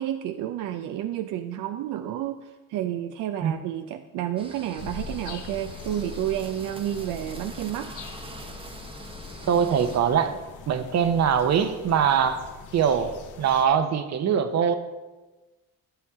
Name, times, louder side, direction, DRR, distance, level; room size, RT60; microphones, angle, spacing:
voice 1, 0.0-7.9, right 11 dB, 85° right, 7 dB, 0.5 m, -30 dB
sound 1, 4.4-10.0, right 2 dB, 20° right, 0.9 m, -43 dB
sound 2, 4.7-13.6, left 6 dB, 80° left, 1.0 m, -42 dB
voice 2, 9.5-10.4 10.7-12.4 12.7-14.7, right 7 dB, 60° right, 10 dB, 0.8 m, -22 dB
11.5 x 7.2 x 3.6 m, 1.2 s
cardioid pair, 90°, 30 cm